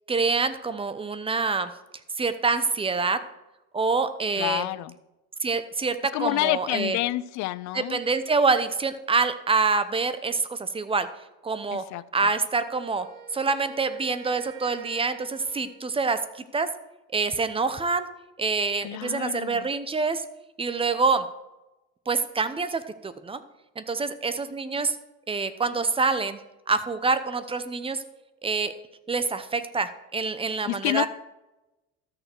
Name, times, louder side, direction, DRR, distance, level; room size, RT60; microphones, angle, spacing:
voice 1, 0.1-1.7 2.2-3.2 3.7-4.7 5.4-7.0 7.7-11.1 11.4-11.8 12.1-13.1 13.3-16.7 17.1-18.1 18.4-20.3 20.6-21.3 22.1-23.4 23.8-25.0 25.3-26.4 26.7-28.0 28.4-28.7 29.1-31.1, right 4 dB, 20° right, 12 dB, 0.8 m, -26 dB
voice 2, 4.4-4.9 6.1-8.0 11.7-12.3 18.8-19.7 30.7-31.1, left 17 dB, 70° left, 18 dB, 0.5 m, -28 dB
Wind instrument woodwind instrument, 12.6-16.0, right 8 dB, 80° right, 1.4 m, -48 dB
13.0 x 6.7 x 4.5 m, 1.0 s
cardioid pair, 110°, 30 cm